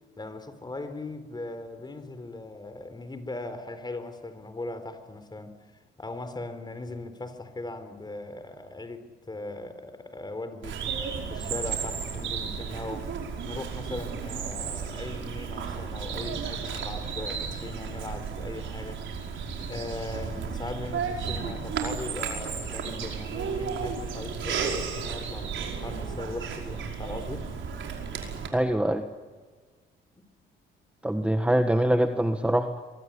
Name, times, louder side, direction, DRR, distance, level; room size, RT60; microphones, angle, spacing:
voice 1, 0.2-5.5 6.0-10.8 11.3-13.1 13.4-19.0 19.7-27.5 30.2-30.3, left 2 dB, 20° left, 4.2 m, -39 dB
Bird vocalization bird call bird song, 10.6-28.5, right 6 dB, 70° right, 5.3 m, -33 dB
voice 2, 28.5-29.0 31.0-32.8, right 1 dB, 5° right, 1.6 m, -24 dB
24.5 x 23.0 x 10.0 m
cardioid pair, 90°, 20 cm